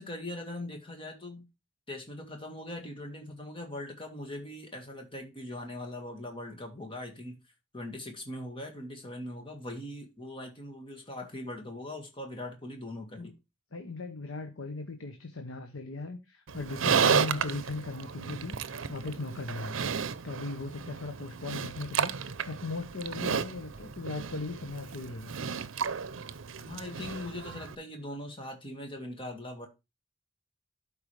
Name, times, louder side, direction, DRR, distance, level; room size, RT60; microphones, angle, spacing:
voice 1, 0.0-1.4 1.9-7.4 7.7-13.3 26.6-29.7, left 1 dB, 25° left, 1.8 m, -41 dB
voice 2, 13.7-19.8 20.2-25.3, left 3 dB, 90° left, 1.0 m, -38 dB
Livestock farm animals working animals, 16.5-27.7, right 6 dB, 80° right, 0.6 m, -33 dB
12.0 x 4.8 x 3.3 m
head